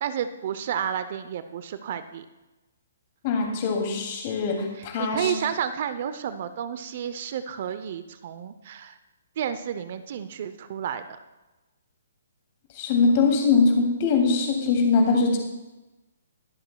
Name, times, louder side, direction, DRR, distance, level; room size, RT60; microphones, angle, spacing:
voice 1, 0.0-2.3 4.8-9.0 9.4-11.0, right 9 dB, 50° right, 12 dB, 0.6 m, -31 dB
voice 2, 3.2-5.3 12.7-15.4, left 4 dB, 40° left, 1 dB, 2.6 m, -22 dB
21.0 x 7.8 x 2.3 m, 1.1 s
hypercardioid pair, 145°, 0 cm